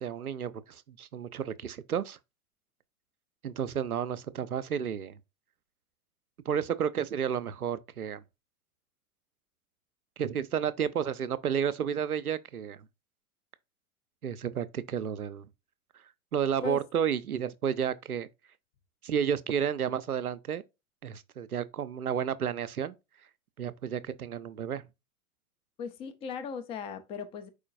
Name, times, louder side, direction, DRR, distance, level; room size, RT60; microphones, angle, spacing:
voice 1, 0.0-2.2 3.4-5.2 6.5-8.2 10.2-12.8 14.2-15.5 16.3-18.3 19.0-20.6 21.0-22.9 23.6-24.8, right 8 dB, 90° right, 0.5 m, -31 dB
voice 2, 25.8-27.5, left 7 dB, 15° left, 0.3 m, -37 dB
4.8 x 4.3 x 2.4 m
figure-of-eight pair, 90°, 43 cm